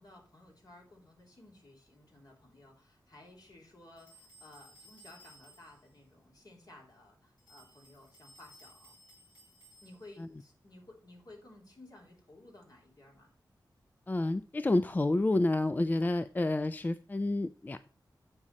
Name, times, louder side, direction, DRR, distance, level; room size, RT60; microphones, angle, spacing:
voice 1, 0.0-9.0 9.8-13.3, left 2 dB, 55° left, -1 dB, 3.1 m, -56 dB
sound 1, 4.0-5.9 7.4-10.3, right 1 dB, 80° left, 4.2 m, -59 dB
voice 2, 14.1-17.9, left 2 dB, 25° left, 13 dB, 0.3 m, -29 dB
8.5 x 5.0 x 4.1 m, 0.41 s
wide cardioid pair, 65°, 8 cm